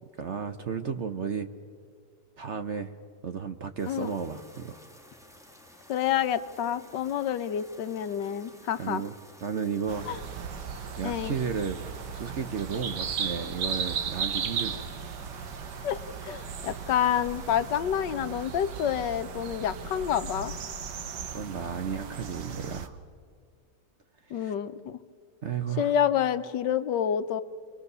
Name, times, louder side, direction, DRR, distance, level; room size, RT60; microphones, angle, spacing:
voice 1, 0.2-1.5 2.4-2.9 3.2-4.8 8.8-9.1 9.4-10.1 11.0-11.8 12.1-14.8 21.3-23.0 24.3-24.5 25.4-25.9, right 6 dB, 50° right, 9 dB, 0.9 m, -33 dB
sound 1, 3.8-17.8, left 1 dB, ahead, 1.7 m, -53 dB
voice 2, 5.9-9.0 10.1-10.2 11.0-11.4 15.8-20.5 24.3-25.0 25.8-27.4, left 9 dB, 80° left, 12 dB, 1.4 m, -28 dB
sound 2, 9.9-22.9, right 6 dB, 70° right, 1.7 m, -36 dB
27.0 x 22.5 x 6.8 m, 2.1 s
omnidirectional pair, 1.9 m